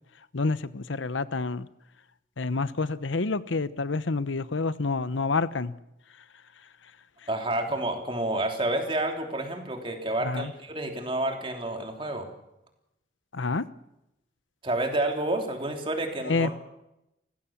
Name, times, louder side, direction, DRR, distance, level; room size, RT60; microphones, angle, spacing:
voice 1, 0.3-1.7 2.4-5.7 10.2-10.5 13.3-13.6 16.2-16.5, left 3 dB, 90° left, 15 dB, 0.9 m, -28 dB
voice 2, 7.3-12.3 14.6-16.5, right 1 dB, 30° right, 3 dB, 3.3 m, -29 dB
29.5 x 16.0 x 7.3 m, 0.88 s
head